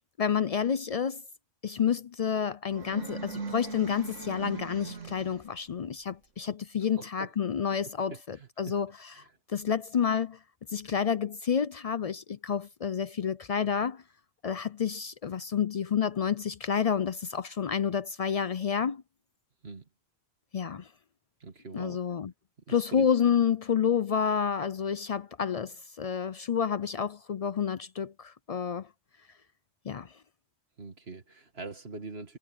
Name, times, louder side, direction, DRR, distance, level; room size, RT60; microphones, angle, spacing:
voice 1, 0.2-1.2 1.6-9.1 9.5-10.4 10.7-14.0 14.4-19.0 20.5-20.9 21.7-22.3 22.7-28.9 29.9-30.1, left 7 dB, 75° left, 0.3 m, -29 dB
sound 1, 2.7-5.6, right 4 dB, 70° right, 2.6 m, -39 dB
voice 2, 7.0-7.3 7.8-8.7 9.2-9.3 19.6-19.8 21.4-22.0 22.7-23.1 30.8-32.4, right 3 dB, 50° right, 2.3 m, -43 dB
omnidirectional pair, 1.3 m